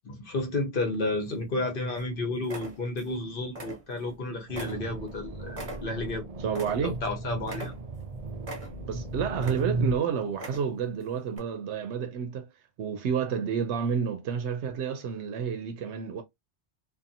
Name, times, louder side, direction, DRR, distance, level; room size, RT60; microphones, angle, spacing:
voice 1, 0.0-6.2 6.8-7.8, left 2 dB, 55° left, 1.0 m, -32 dB
sound 1, 0.9-1.6 2.0-2.1 2.4-3.2 3.5-4.2 4.5-7.1 7.4-8.1 8.4-9.0 9.3-9.9 10.3-10.9 11.3-11.4, right 1 dB, 35° right, 1.0 m, -41 dB
sound 2, 4.5-10.0, right 2 dB, 50° right, 0.4 m, -35 dB
voice 2, 6.4-7.0 8.9-12.5 12.8-16.2, right 7 dB, 90° right, 0.9 m, -30 dB
2.6 x 2.5 x 2.6 m
omnidirectional pair, 1.1 m